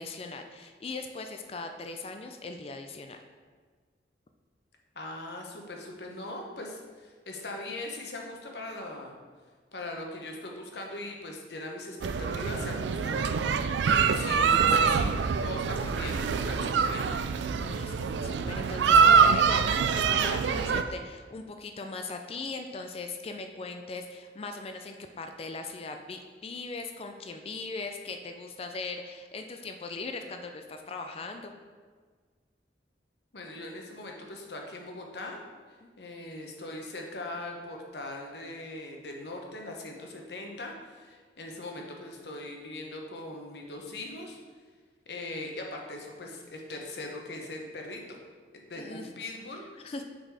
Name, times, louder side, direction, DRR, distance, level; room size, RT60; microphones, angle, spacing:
voice 1, 0.0-3.2 17.5-31.6 35.8-35.9 48.8-49.1 49.8-50.0, left 3 dB, 35° left, 6 dB, 0.4 m, -39 dB
voice 2, 4.9-9.1 9.7-13.2 13.8-17.1 33.3-35.4 36.0-44.4 45.1-48.2 48.7-49.8, left 2 dB, 65° left, 1 dB, 1.0 m, -40 dB
sound 1, 12.0-20.8, right 6 dB, 75° right, 0.3 m, -24 dB
6.3 x 4.1 x 4.7 m, 1.5 s
head